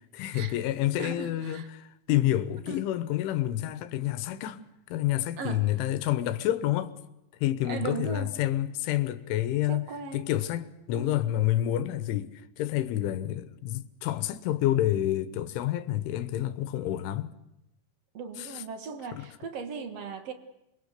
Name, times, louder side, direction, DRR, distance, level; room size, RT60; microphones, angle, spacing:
voice 1, 0.1-4.6 4.9-6.9 7.4-9.9 10.1-12.3 12.6-17.3 18.4-18.6 19.1-19.3, left 13 dB, 85° left, 3.5 m, -28 dB
voice 2, 1.0-1.7 2.7-2.8 5.4-5.6 7.6-8.3 9.7-10.3 10.9-11.2 18.1-20.3, right 5 dB, 70° right, 1.5 m, -37 dB
28.0 x 23.0 x 6.7 m
omnidirectional pair, 5.4 m